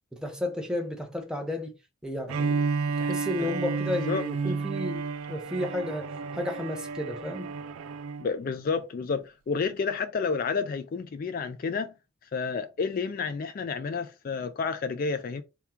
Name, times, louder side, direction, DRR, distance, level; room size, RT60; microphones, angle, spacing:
voice 1, 0.1-1.7 2.0-2.7 3.0-7.5, left 1 dB, 5° right, 0.7 m, -32 dB
Bowed string instrument, 2.3-8.3, right 4 dB, 90° right, 0.4 m, -31 dB
voice 2, 8.2-11.9 12.3-15.4, left 5 dB, 45° left, 0.3 m, -30 dB
3.6 x 2.2 x 4.3 m
head